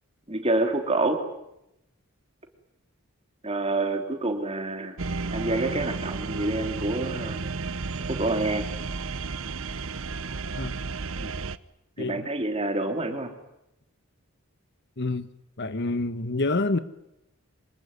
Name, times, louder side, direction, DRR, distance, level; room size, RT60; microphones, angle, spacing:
voice 1, 0.3-1.3 3.4-5.0 5.3-7.4 8.1-8.7 11.2-11.3 12.0-13.3, right 2 dB, 25° right, 3.2 m, -27 dB
sound 1, 5.0-11.6, right 4 dB, 60° right, 0.9 m, -32 dB
voice 2, 12.0-12.3 15.0-15.3 15.6-16.8, left 2 dB, 50° left, 1.2 m, -27 dB
25.5 x 21.0 x 9.6 m
head